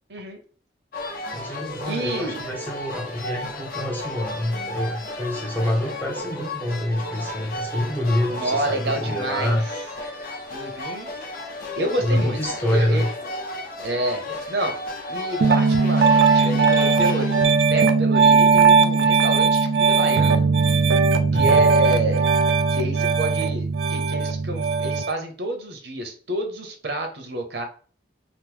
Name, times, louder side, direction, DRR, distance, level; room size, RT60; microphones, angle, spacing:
voice 1, 0.1-0.4 1.8-2.4 8.3-9.6 10.5-11.1 11.8-13.1 13.8-14.8 15.1-20.4 21.3-22.3 22.7-27.6, right 2 dB, 70° right, 4 dB, 0.7 m, -29 dB
sound 1, 0.9-17.5, left 1 dB, 50° left, 0.6 m, -33 dB
voice 2, 1.3-9.7 12.0-13.1 21.3-21.6, left 1 dB, 10° left, 0 dB, 0.5 m, -26 dB
Piano, 15.4-25.1, right 5 dB, 90° right, 0.4 m, -18 dB
3.0 x 2.0 x 3.2 m, 0.40 s
head